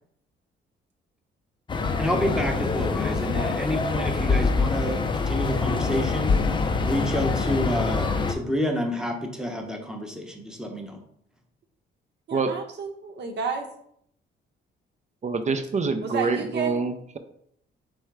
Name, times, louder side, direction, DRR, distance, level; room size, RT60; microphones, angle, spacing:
sound 1, 1.7-8.3, left 4 dB, 25° left, 0.4 m, -25 dB
voice 1, 2.0-6.3 6.8-11.0, equal, 5° right, 2 dB, 0.8 m, -29 dB
voice 2, 12.3-13.7 16.0-16.8, right 5 dB, 60° right, 4 dB, 0.9 m, -31 dB
voice 3, 15.2-17.2, right 4 dB, 35° right, 8 dB, 0.5 m, -26 dB
3.5 x 3.2 x 4.7 m, 0.68 s
cardioid pair, 90°, 20 cm